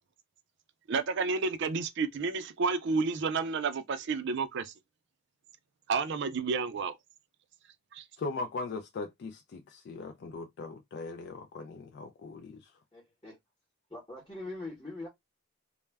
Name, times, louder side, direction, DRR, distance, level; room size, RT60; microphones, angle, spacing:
voice 1, 0.9-4.7 5.9-6.9 7.9-8.0, right 4 dB, 55° right, 0.4 m, -30 dB
voice 2, 8.2-12.7, left 3 dB, 50° left, 0.3 m, -39 dB
voice 3, 12.9-13.4 13.9-15.1, left 2 dB, 20° left, 0.9 m, -42 dB
2.1 x 2.1 x 3.3 m
head